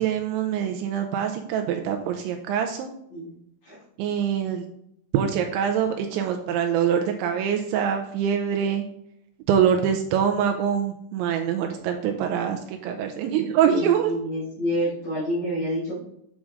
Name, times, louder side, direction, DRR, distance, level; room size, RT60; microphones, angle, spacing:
voice 1, 0.0-2.9 4.0-4.7 5.1-8.9 9.5-14.2, right 8 dB, 90° right, 4 dB, 2.7 m, -24 dB
voice 2, 13.7-16.0, equal, 40° left, -8 dB, 3.7 m, -28 dB
8.4 x 6.3 x 3.7 m, 0.74 s
omnidirectional pair, 5.9 m